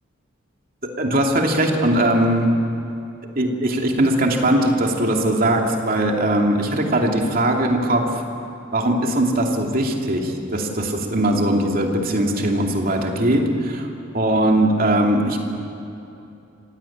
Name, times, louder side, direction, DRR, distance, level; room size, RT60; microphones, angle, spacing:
voice 1, 1.0-2.5 3.3-8.2 8.7-13.9 14.1-15.4, right 1 dB, 45° right, 1 dB, 2.7 m, -20 dB
26.5 x 17.0 x 8.7 m, 2.8 s
head